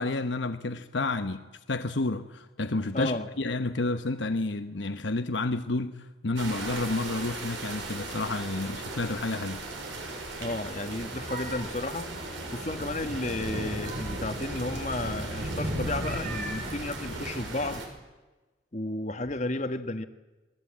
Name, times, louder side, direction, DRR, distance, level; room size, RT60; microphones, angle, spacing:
voice 1, 0.0-5.9 6.2-9.6, left 2 dB, 70° left, 1.1 m, -30 dB
voice 2, 2.9-3.3 10.4-12.1 12.5-17.8 18.7-20.0, left 2 dB, 35° left, 1.4 m, -33 dB
sound 1, 6.4-17.9, right 2 dB, 85° right, 6.1 m, -36 dB
sound 2, 10.9-13.0 13.5-14.7 15.8-17.6, right 2 dB, 40° right, 3.2 m, -44 dB
28.5 x 20.5 x 8.7 m
head